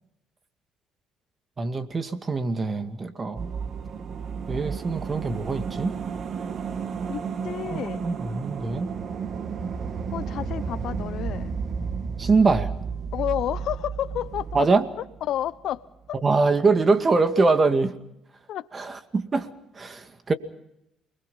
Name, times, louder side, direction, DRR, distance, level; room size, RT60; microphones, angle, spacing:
voice 1, 1.6-3.5 4.5-6.0 7.7-8.9 12.2-12.7 14.5-14.9 16.2-18.0 18.7-20.3, right 3 dB, 35° right, 2.2 m, -23 dB
sound 1, 3.3-15.8 16.0-16.1, right 6 dB, 55° right, 1.9 m, -32 dB
voice 2, 7.1-8.1 10.1-11.5 13.1-14.7 15.3-16.2 18.5-18.7, left 11 dB, 70° left, 0.8 m, -31 dB
29.0 x 21.5 x 5.6 m
supercardioid pair, 65°, 0 cm